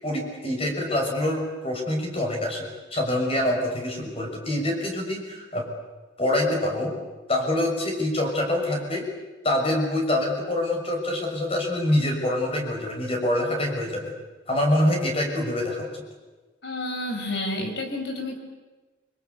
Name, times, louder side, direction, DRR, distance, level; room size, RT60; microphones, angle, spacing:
voice 1, 0.0-5.7 6.2-6.9 7.3-9.1 9.4-14.1 14.5-16.0, left 1 dB, 30° left, 1 dB, 6.5 m, -25 dB
voice 2, 16.6-18.4, left 1 dB, 60° left, 4 dB, 5.8 m, -30 dB
29.5 x 23.5 x 8.2 m, 1.2 s
head